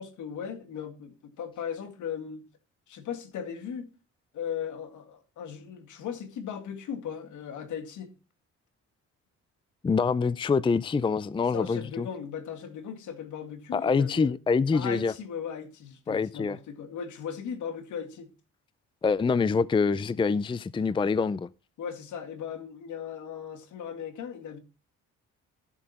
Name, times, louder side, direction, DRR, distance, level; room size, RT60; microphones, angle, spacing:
voice 1, 0.0-2.4 2.9-3.9 4.3-8.1 11.5-14.3 14.7-18.3 21.8-24.6, left 7 dB, 75° left, 2.0 m, -37 dB
voice 2, 9.8-12.1 13.7-15.1 16.1-16.6 19.0-21.5, left 5 dB, 15° left, 0.4 m, -25 dB
13.5 x 7.7 x 4.2 m
cardioid pair, 90°, 30 cm